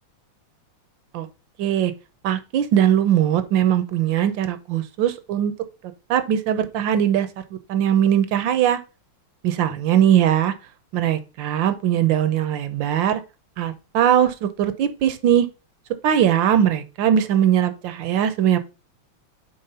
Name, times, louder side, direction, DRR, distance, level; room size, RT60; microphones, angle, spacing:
voice 1, 1.6-1.9 2.2-5.5 6.1-7.3 7.7-8.8 9.4-10.5 10.9-13.2 13.6-15.5 16.0-18.6, right 10 dB, 75° right, 1.3 m, -20 dB
5.5 x 4.2 x 5.2 m
omnidirectional pair, 2.2 m